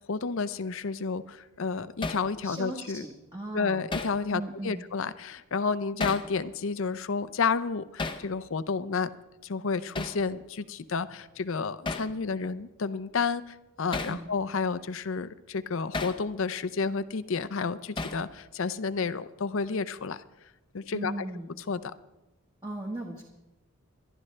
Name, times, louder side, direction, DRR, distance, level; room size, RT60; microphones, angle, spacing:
voice 1, 0.0-3.1 3.5-9.1 9.4-20.2 20.7-21.1 21.7-21.9, left 5 dB, 65° left, 14 dB, 0.6 m, -31 dB
Hammer, 2.0-2.3 3.9-4.2 6.0-6.3 8.0-8.3 9.9-10.2 11.9-12.1 13.9-14.2 15.9-16.2 18.0-18.3, left 3 dB, 20° left, 0.6 m, -33 dB
voice 2, 2.4-3.9 4.3-4.8 14.0-14.3 20.9-21.6 22.6-23.2, right 1 dB, 20° right, -1 dB, 1.3 m, -37 dB
25.0 x 12.0 x 3.3 m, 1.0 s
head